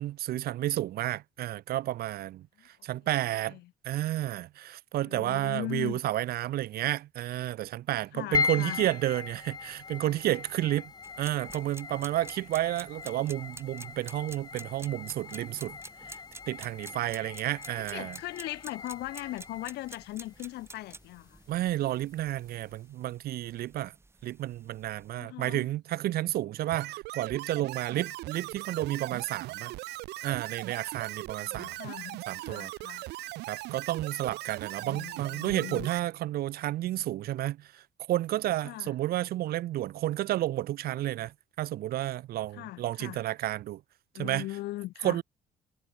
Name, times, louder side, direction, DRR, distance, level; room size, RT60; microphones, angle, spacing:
voice 1, 0.0-3.6 3.8-10.9 11.2-15.7 16.5-18.2 21.5-23.9 24.2-29.7 30.2-31.7 32.3-32.7 33.5-43.8 44.2-44.4 45.0-45.2, right 14 dB, 65° right, 0.8 m, -31 dB
voice 2, 3.3-3.7 5.0-6.0 8.1-8.8 17.8-21.4 25.2-25.7 31.4-33.1 34.8-35.9 38.6-39.0 42.5-43.2 44.1-45.2, left 17 dB, 75° left, 1.3 m, -39 dB
sound 1, 8.3-22.8, left 5 dB, 25° left, 0.7 m, -39 dB
sound 2, 11.0-25.1, right 3 dB, 15° right, 2.6 m, -50 dB
sound 3, 26.7-36.0, right 18 dB, 80° right, 1.8 m, -39 dB
cardioid pair, 110°, 17 cm